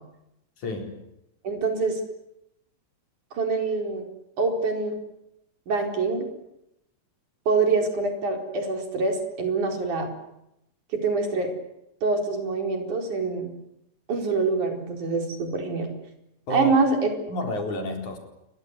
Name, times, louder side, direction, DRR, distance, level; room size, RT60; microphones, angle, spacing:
voice 1, 0.6-0.9 16.5-16.7 17.3-18.2, left 1 dB, 75° left, 3 dB, 5.8 m, -30 dB
voice 2, 1.4-2.0 3.3-4.0 4.4-5.0 5.7-6.3 7.5-10.1 10.9-11.5 12.0-13.5 14.1-15.9 16.5-17.1, right 4 dB, 80° right, 4 dB, 6.0 m, -25 dB
28.5 x 23.0 x 8.4 m, 0.84 s
omnidirectional pair, 3.4 m